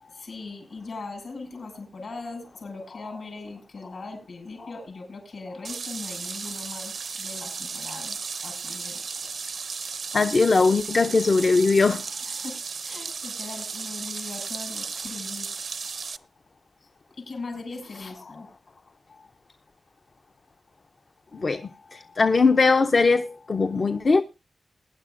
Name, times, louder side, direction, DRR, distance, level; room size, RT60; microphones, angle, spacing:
voice 1, 0.1-8.2 8.4-9.0 12.2-15.5 16.8-18.5, left 3 dB, 65° left, 5.8 m, -39 dB
sound 1, 5.6-16.2, right 5 dB, 70° right, 0.5 m, -35 dB
voice 2, 10.1-12.0 21.4-21.6 22.2-24.2, left 4 dB, 50° left, 0.5 m, -20 dB
21.5 x 10.0 x 2.5 m
wide cardioid pair, 120°, 0 cm